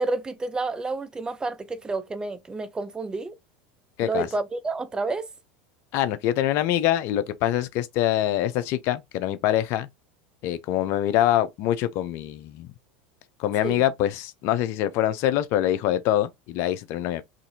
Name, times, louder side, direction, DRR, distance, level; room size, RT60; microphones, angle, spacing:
voice 1, 0.0-3.4 4.0-5.3 13.6-13.7, right 3 dB, 15° right, 0.5 m, -29 dB
voice 2, 5.9-9.9 10.4-12.7 13.4-17.2, left 12 dB, 55° left, 0.4 m, -24 dB
2.6 x 2.5 x 2.7 m
hypercardioid pair, 95°, 5 cm